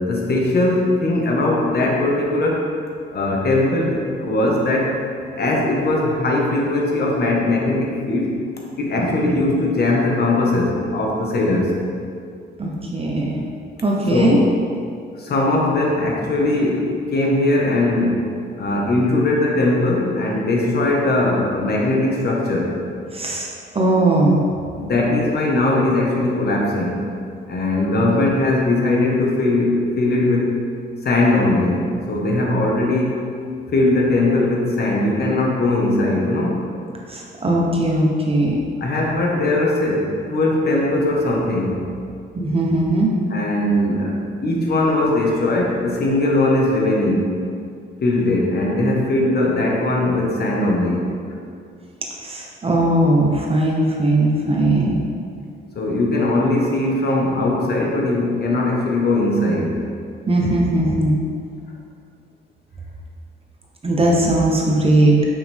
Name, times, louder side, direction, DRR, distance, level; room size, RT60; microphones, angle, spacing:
voice 1, 0.0-2.7 3.1-5.0 5.3-8.4 8.8-11.8 14.1-14.4 15.2-18.2 18.6-22.7 24.8-27.1 27.5-30.5 31.0-33.2 33.7-36.6 38.8-41.9 43.3-47.4 48.0-51.0 55.7-59.8, left 2 dB, 55° left, -2 dB, 1.5 m, -20 dB
voice 2, 9.0-9.4 12.6-13.4 13.8-14.4 23.1-23.5 23.7-24.4 37.1-38.5 42.3-43.1 52.2-55.0 60.3-61.2 63.8-65.3, right 1 dB, 30° right, -2 dB, 1.0 m, -18 dB
7.2 x 5.7 x 3.6 m, 2.3 s
cardioid pair, 90°, 20 cm